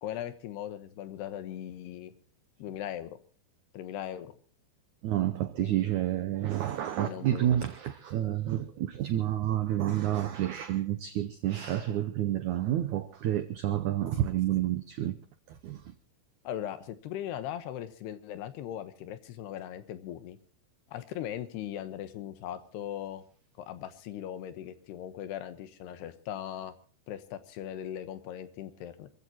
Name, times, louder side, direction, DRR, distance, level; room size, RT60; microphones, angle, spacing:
voice 1, 0.0-2.1 2.6-3.2 3.7-4.3 5.6-5.9 7.0-7.6 16.4-20.4 20.9-23.2 23.6-26.7 27.1-29.1, left 11 dB, 80° left, 3.2 m, -39 dB
voice 2, 5.0-15.2 15.5-15.8, right 12 dB, 85° right, 1.7 m, -29 dB
27.0 x 15.0 x 3.0 m
omnidirectional pair, 4.7 m